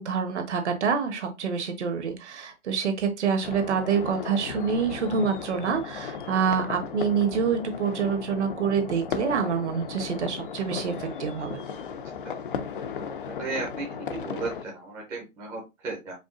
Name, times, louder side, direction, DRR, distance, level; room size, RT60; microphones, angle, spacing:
voice 1, 0.0-11.6, right 6 dB, 55° right, 6 dB, 1.3 m, -27 dB
sound 1, 3.4-14.6, left 6 dB, 40° left, 0.5 m, -36 dB
voice 2, 13.4-16.1, right 3 dB, 5° right, -4 dB, 0.6 m, -35 dB
5.1 x 2.2 x 3.7 m, 0.23 s
hypercardioid pair, 145°, 42 cm